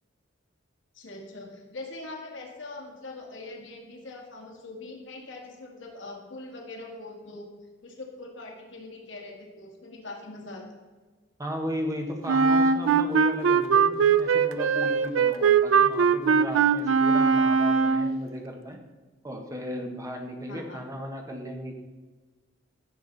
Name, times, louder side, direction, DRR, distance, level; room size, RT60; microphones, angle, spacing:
voice 1, 1.0-7.5 7.8-10.7 20.5-20.8, left 2 dB, 70° left, 1 dB, 1.9 m, -42 dB
voice 2, 11.4-18.8 19.2-21.8, equal, 15° right, 2 dB, 1.2 m, -35 dB
Wind instrument woodwind instrument, 12.3-18.2, right 6 dB, 85° right, 0.5 m, -21 dB
15.5 x 7.1 x 4.0 m, 1.3 s
head